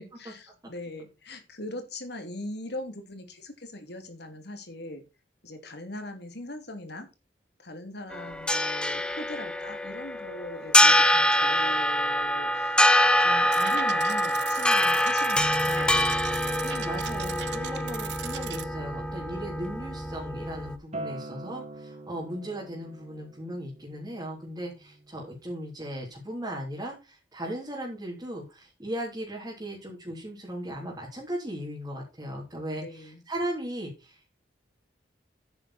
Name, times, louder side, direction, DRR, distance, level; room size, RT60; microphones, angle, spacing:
voice 1, 0.0-5.0 5.4-7.1 7.6-12.9 13.2-16.1 17.6-18.0 32.8-33.2, left 1 dB, 65° left, 6 dB, 2.9 m, -40 dB
sound 1, 8.1-20.8, left 1 dB, 5° left, 0.8 m, -25 dB
sound 2, 13.5-18.6, right 12 dB, 70° right, 0.7 m, -39 dB
voice 2, 16.6-34.3, right 1 dB, 20° right, -5 dB, 3.5 m, -37 dB
Acoustic guitar, 20.9-26.1, right 2 dB, 40° right, 1.6 m, -44 dB
11.0 x 8.8 x 4.3 m, 0.28 s
head